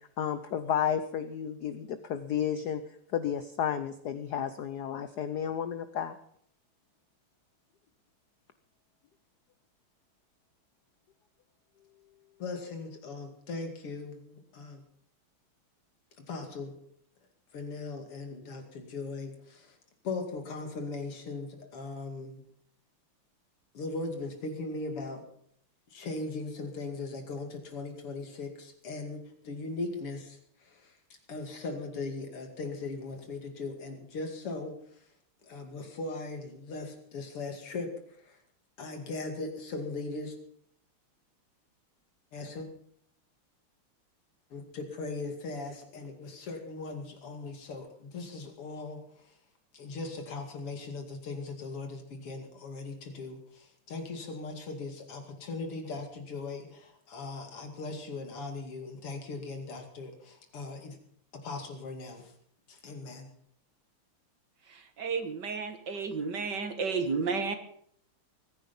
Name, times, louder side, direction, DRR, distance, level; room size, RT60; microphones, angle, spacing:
voice 1, 0.2-2.8 3.1-6.2, left 9 dB, 60° left, 10 dB, 1.1 m, -32 dB
voice 2, 12.4-14.8 16.2-16.8 17.5-19.8 20.0-22.4 23.7-25.3 25.9-31.0 31.3-35.1 35.4-38.4 38.8-40.4 42.3-42.7 44.5-49.4 49.7-61.0 61.3-62.3 62.7-63.3, left 3 dB, 90° left, 5 dB, 3.3 m, -39 dB
voice 3, 64.6-67.6, right 5 dB, 55° right, 8 dB, 2.0 m, -32 dB
22.5 x 10.0 x 5.4 m, 0.66 s
omnidirectional pair, 2.4 m